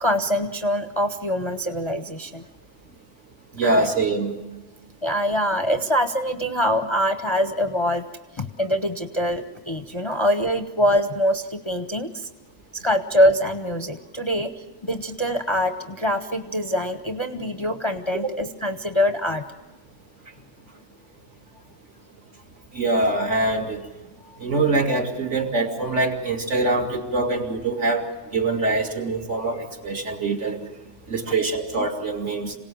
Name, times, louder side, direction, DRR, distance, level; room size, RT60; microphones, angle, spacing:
voice 1, 0.0-2.4 3.6-3.9 5.0-8.0 8.4-12.3 12.7-19.4, equal, 30° left, 8 dB, 0.7 m, -24 dB
voice 2, 3.5-4.3 22.7-23.9 24.4-28.1 28.3-30.6 31.1-32.5, right 2 dB, 65° right, 1 dB, 2.8 m, -24 dB
26.5 x 18.0 x 7.7 m, 1.1 s
omnidirectional pair, 1.4 m